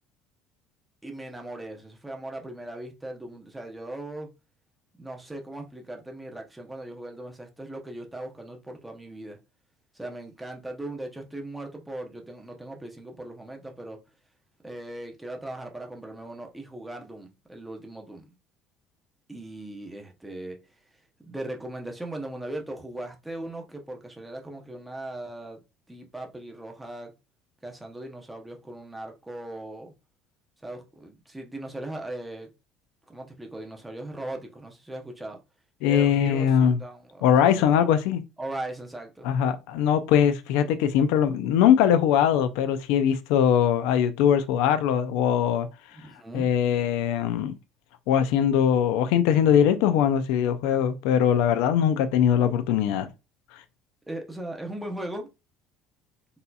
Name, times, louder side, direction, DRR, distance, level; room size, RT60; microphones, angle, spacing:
voice 1, 1.0-4.3 5.0-9.4 9.9-14.0 14.6-18.2 19.3-20.6 21.2-25.6 25.9-27.1 27.6-29.9 30.6-32.5 33.1-35.4 35.8-37.7 38.4-39.3 45.9-46.5 54.1-55.3, right 1 dB, 5° right, 0.6 m, -38 dB
voice 2, 35.8-36.8 37.2-38.2 39.2-45.7 46.3-47.5 48.1-53.1, left 9 dB, 85° left, 0.3 m, -21 dB
4.0 x 2.7 x 2.3 m
cardioid pair, 130°, 0 cm